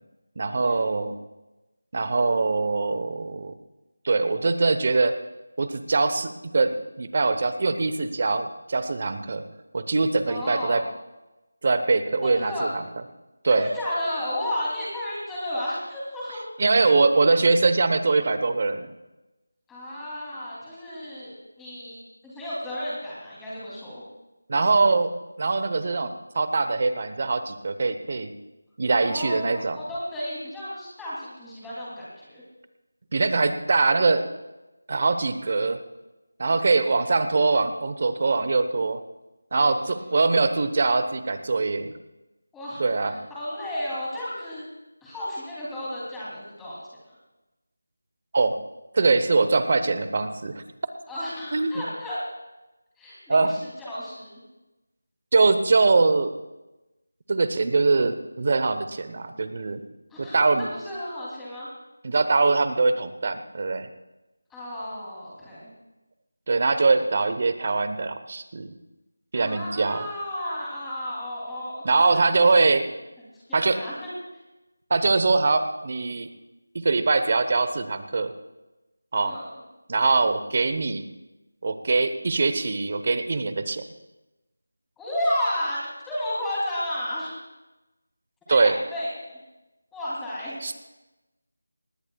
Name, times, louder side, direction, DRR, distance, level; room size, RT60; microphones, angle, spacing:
voice 1, 0.4-1.1 1.9-3.5 4.0-5.1 5.6-9.4 9.7-10.8 11.6-12.8 13.4-13.7 16.6-18.9 24.5-25.1 25.4-28.3 28.8-29.8 33.1-34.2 34.9-35.8 36.4-39.0 39.5-41.9 42.8-43.1 48.3-48.6 48.9-50.6 51.5-51.7 53.3-53.5 55.3-56.3 57.3-59.8 60.2-60.7 62.0-63.9 66.5-68.7 69.3-70.1 71.8-72.9 73.5-73.8 74.9-76.3 76.7-78.3 79.1-79.3 79.9-81.0 81.6-83.9 88.5-88.7 90.6-90.7, right 3 dB, 40° right, 10 dB, 1.0 m, -22 dB
voice 2, 10.3-10.9 12.2-12.7 13.5-16.4 16.8-16.9 19.7-24.0 29.0-32.4 36.8-37.0 39.5-40.1 42.5-44.6 45.0-46.8 51.1-52.2 53.0-54.4 60.1-61.7 64.5-65.7 69.3-72.5 72.8-72.9 73.3-74.1 79.2-79.5 85.0-85.8 86.1-87.4 88.5-89.3 89.9-90.6, left 1 dB, 5° left, -9 dB, 3.0 m, -33 dB
19.5 x 17.5 x 2.4 m, 1.0 s
figure-of-eight pair, 170°, 0 cm